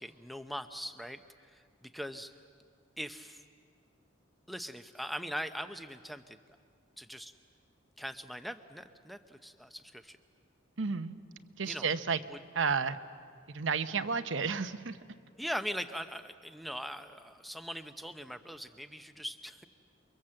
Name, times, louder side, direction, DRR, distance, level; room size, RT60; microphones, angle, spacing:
voice 1, 0.0-2.3 3.0-3.4 4.5-6.4 7.0-7.3 8.0-10.2 11.6-11.9 12.3-12.4 15.4-19.7, equal, ahead, 8 dB, 0.7 m, -41 dB
voice 2, 10.8-11.1 11.6-12.2 12.5-13.0 13.5-15.0, right 5 dB, 70° right, 11 dB, 0.8 m, -31 dB
29.0 x 23.0 x 7.7 m, 2.2 s
head